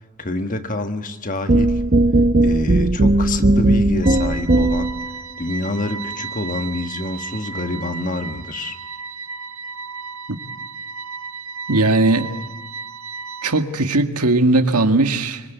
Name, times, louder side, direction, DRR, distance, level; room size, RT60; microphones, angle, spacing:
voice 1, 0.2-1.8 2.4-4.9 5.4-8.8, left 2 dB, 35° left, 1.5 m, -27 dB
sound 1, 1.5-5.0, right 1 dB, 40° right, 0.9 m, -16 dB
sound 2, 4.0-13.6, right 5 dB, 65° right, 1.6 m, -34 dB
voice 2, 11.7-12.4 13.4-15.5, right 2 dB, 90° right, 1.9 m, -18 dB
26.0 x 24.0 x 8.2 m
head